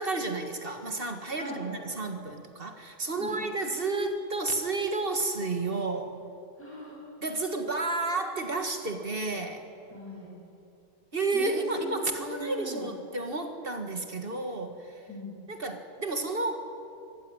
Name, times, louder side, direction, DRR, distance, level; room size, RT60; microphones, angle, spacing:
voice 1, 0.0-6.2 7.2-9.7 11.1-15.0 15.5-16.6, right 3 dB, 30° right, 6 dB, 1.6 m, -31 dB
voice 2, 6.6-7.0 9.9-10.3 11.3-12.9 15.1-15.4, equal, 5° left, -7 dB, 7.4 m, -40 dB
24.0 x 15.0 x 9.6 m, 2.7 s
omnidirectional pair, 2.4 m